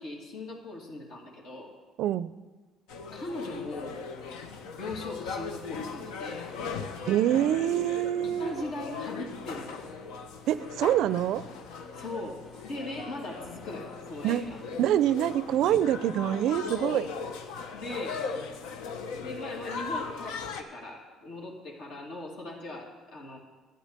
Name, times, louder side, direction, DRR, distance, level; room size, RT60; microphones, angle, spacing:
voice 1, 0.0-1.7 3.1-4.0 4.8-6.4 8.2-9.8 11.9-14.6 17.7-18.2 19.2-23.4, left 2 dB, 70° left, -2 dB, 2.3 m, -39 dB
voice 2, 2.0-2.3 7.0-8.5 10.5-11.4 14.2-14.5 14.8-17.1, right 11 dB, 70° right, 16 dB, 0.4 m, -25 dB
sound 1, 2.9-20.6, left 5 dB, 85° left, 0.9 m, -39 dB
sound 2, 3.5-18.5, left 2 dB, 50° left, 2.3 m, -55 dB
10.0 x 8.8 x 6.6 m, 1.3 s
supercardioid pair, 85°, 0 cm